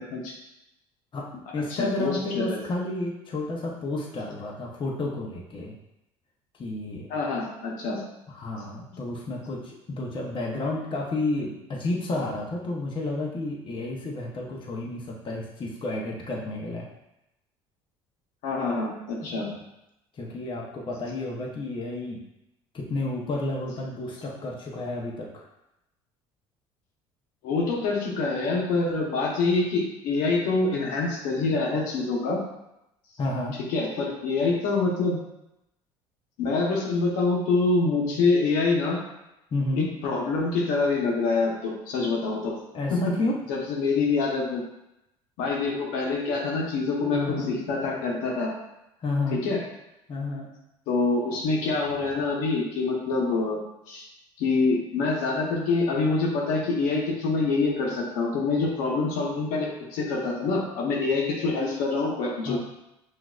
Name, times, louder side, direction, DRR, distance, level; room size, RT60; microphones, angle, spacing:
voice 1, 1.1-5.7 6.6-7.1 8.3-16.9 19.2-19.6 20.1-22.2 22.7-25.5 33.2-33.6 39.5-39.9 42.7-43.4 47.1-47.5 49.0-49.4 50.1-50.5 62.4-62.6, left 2 dB, 35° left, -2 dB, 0.9 m, -31 dB
voice 2, 1.7-2.6 7.1-8.0 18.4-19.5 27.4-32.4 33.7-35.2 36.4-39.0 39.7-42.5 42.9-43.0 43.5-44.6 45.4-48.5 49.4-49.6 50.9-53.6 53.9-54.0 54.4-62.6, left 3 dB, 75° left, -2 dB, 1.0 m, -26 dB
5.8 x 2.7 x 2.4 m, 0.88 s
supercardioid pair, 80°, 14 cm